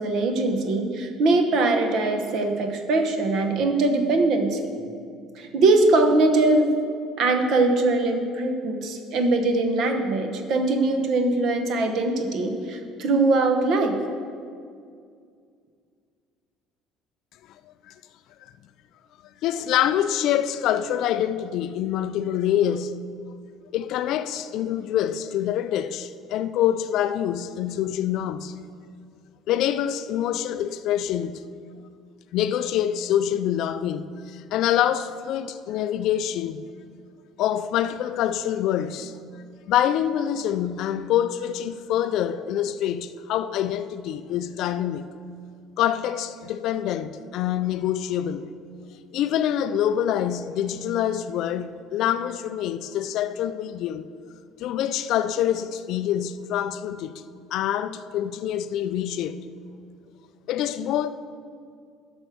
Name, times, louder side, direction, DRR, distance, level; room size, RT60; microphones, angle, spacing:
voice 1, 0.0-4.9 5.4-6.7 7.2-14.0, right 2 dB, 45° right, 1.0 m, -22 dB
voice 2, 19.4-23.0 23.7-28.6 29.5-31.4 32.3-36.6 37.4-39.1 39.7-45.1 45.8-48.5 49.1-54.1 54.6-57.2 57.5-59.4 60.5-61.1, left 10 dB, 50° left, 0.3 m, -25 dB
12.0 x 6.2 x 4.9 m
cardioid pair, 175°, 0 cm